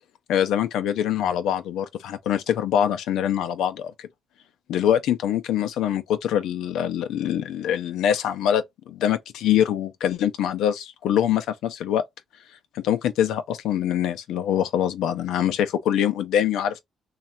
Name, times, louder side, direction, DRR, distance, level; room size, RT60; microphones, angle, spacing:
voice 1, 0.3-4.1 4.7-12.0 12.7-16.8, left 10 dB, 85° left, 0.5 m, -24 dB
3.2 x 2.4 x 4.2 m
cardioid pair, 90°, 0 cm